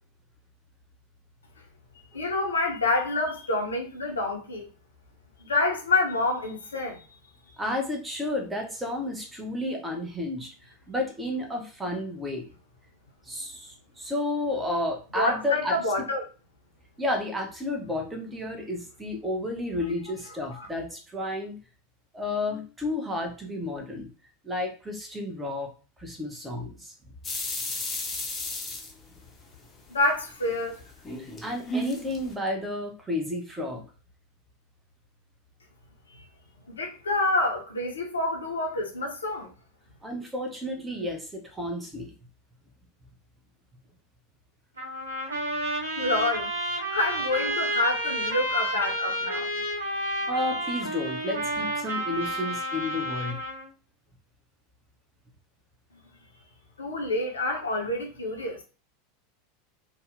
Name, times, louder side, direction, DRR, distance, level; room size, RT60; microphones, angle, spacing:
voice 1, 2.1-4.7 5.4-7.0 15.2-16.2 20.6-20.7 29.9-30.8 36.7-39.5 46.0-46.5 46.9-49.5 56.8-58.6, left 2 dB, 75° left, 0.5 m, -27 dB
voice 2, 7.6-12.5 13.2-16.1 17.0-21.6 22.1-24.1 24.4-25.7 26.0-26.9 31.2-33.8 40.0-42.1 50.3-53.4, left 1 dB, 10° right, 0.7 m, -31 dB
sound 1, 27.2-29.7 30.1-32.3, left 1 dB, 25° left, 0.6 m, -33 dB
Trumpet, 44.8-53.7, right 1 dB, 80° right, 0.7 m, -31 dB
2.7 x 2.1 x 2.4 m
figure-of-eight pair, 80°, 0 cm